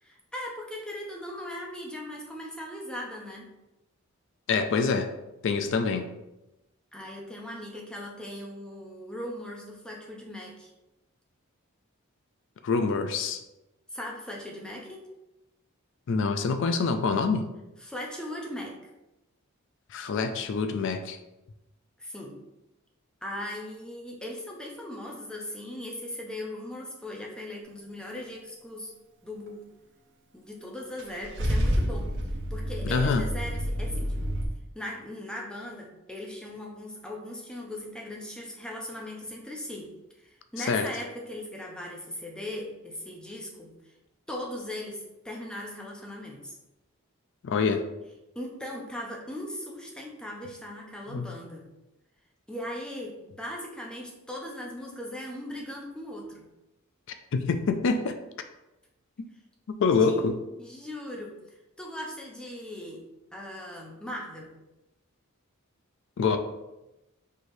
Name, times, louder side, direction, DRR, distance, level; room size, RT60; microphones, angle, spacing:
voice 1, 0.0-3.5 6.9-10.7 13.9-15.0 17.8-18.8 22.0-22.4 23.2-28.9 29.2-29.7 30.3-32.1 32.5-34.2 34.7-39.9 40.2-43.7 44.3-46.6 48.4-51.7 52.5-56.5 60.0-60.2 60.6-61.3 61.8-63.0 63.3-64.5, left 1 dB, 5° left, -1 dB, 0.6 m, -39 dB
voice 2, 4.5-5.1 5.4-6.1 12.6-13.4 16.1-17.4 19.9-21.2 32.8-33.2 40.6-40.9 47.4-47.8 51.1-51.3 57.3-58.2 59.7-60.4 66.2-66.4, left 4 dB, 60° left, 8 dB, 0.4 m, -26 dB
Car / Engine starting / Idling, 31.0-34.5, equal, 60° right, 0.6 m, -29 dB
4.6 x 3.1 x 2.6 m, 0.96 s
head